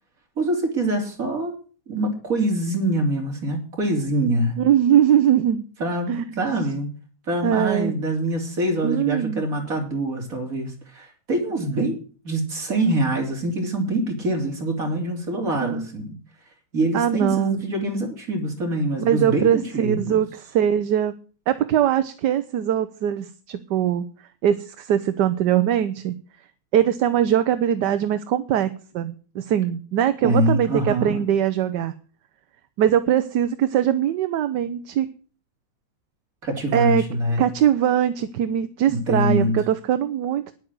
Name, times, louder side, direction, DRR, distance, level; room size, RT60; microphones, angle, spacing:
voice 1, 0.4-1.5 1.9-4.6 5.8-6.9 7.3-12.0 12.2-16.1 16.7-20.2 30.2-31.2 36.4-37.4 38.9-39.6, right 1 dB, 45° right, 1 dB, 3.7 m, -24 dB
voice 2, 4.6-5.7 6.1-6.4 7.4-7.9 8.8-9.4 15.6-15.9 16.9-17.6 19.0-21.1 21.5-24.0 24.4-26.1 26.7-31.9 32.8-35.1 36.7-37.0 37.4-40.5, right 10 dB, 65° right, 11 dB, 1.3 m, -21 dB
10.0 x 8.9 x 7.6 m, 0.40 s
omnidirectional pair, 2.1 m